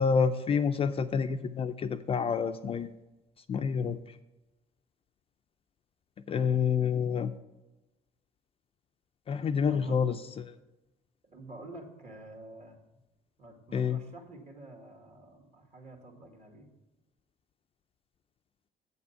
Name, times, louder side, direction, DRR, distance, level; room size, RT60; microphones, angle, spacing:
voice 1, 0.0-2.9 3.5-4.0 6.3-7.3 9.3-10.5 13.7-14.0, left 6 dB, 35° left, 9 dB, 0.4 m, -28 dB
voice 2, 11.3-12.8 13.4-16.7, right 2 dB, 40° right, 2 dB, 2.0 m, -48 dB
8.1 x 6.9 x 5.6 m, 1.0 s
cardioid pair, 110°, 17 cm